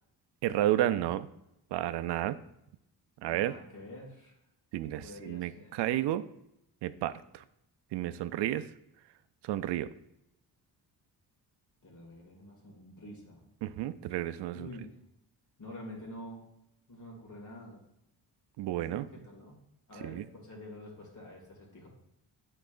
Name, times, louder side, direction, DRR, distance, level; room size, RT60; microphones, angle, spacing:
voice 1, 0.4-1.3 1.7-2.4 3.2-3.6 4.7-6.2 6.8-7.4 7.9-8.7 9.4-9.9 13.6-14.7 18.6-19.1 20.0-20.2, right 13 dB, 80° right, 13 dB, 0.5 m, -31 dB
voice 2, 3.3-4.4 5.0-5.8 11.8-13.4 14.5-15.0 15.6-16.5 16.9-17.8 18.9-19.6 19.9-21.9, left 1 dB, 45° left, -1 dB, 2.2 m, -47 dB
9.7 x 4.0 x 2.5 m, 0.81 s
cardioid pair, 105°, 41 cm